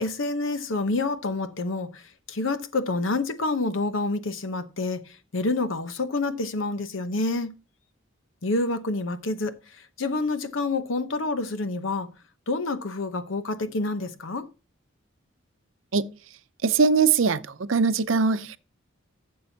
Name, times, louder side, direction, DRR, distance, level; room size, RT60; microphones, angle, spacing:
voice 1, 0.0-2.0 2.3-5.0 5.3-7.5 8.4-9.5 10.0-12.1 12.5-14.4, left 2 dB, 90° left, 0.9 m, -28 dB
voice 2, 16.6-18.6, right 5 dB, 90° right, 0.6 m, -21 dB
12.0 x 7.6 x 2.8 m
head